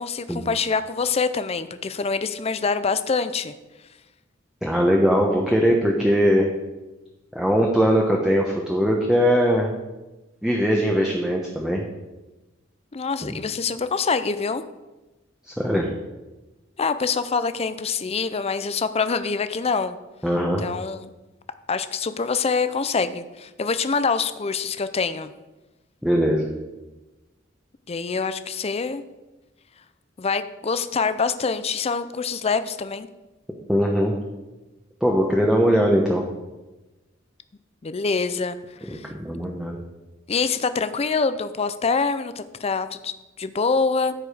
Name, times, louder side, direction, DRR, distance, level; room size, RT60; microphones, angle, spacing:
voice 1, 0.0-3.5 12.9-14.6 16.8-20.0 20.6-21.1 21.7-25.3 27.9-29.0 30.2-33.1 37.8-38.6 38.8-39.1 40.3-44.1, left 5 dB, 30° left, 12 dB, 0.5 m, -25 dB
voice 2, 4.6-6.5 7.3-9.7 10.4-11.8 13.2-13.3 15.6-15.9 20.2-20.6 26.0-26.5 33.7-34.1 35.0-36.2 38.9-39.8, equal, 5° right, -1 dB, 0.9 m, -20 dB
14.0 x 4.9 x 4.9 m, 1.1 s
head